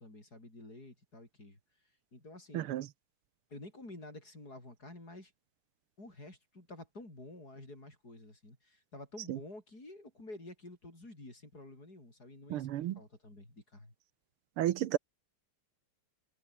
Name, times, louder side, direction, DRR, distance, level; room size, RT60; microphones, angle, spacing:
voice 1, 0.0-1.6 2.1-2.7 3.5-5.3 6.0-13.9, left 2 dB, 45° left, 8.2 m, -50 dB
voice 2, 2.5-2.9 9.3-9.4 12.5-13.0 14.6-15.0, right 13 dB, 85° right, 1.8 m, -32 dB
omnidirectional pair, 2.4 m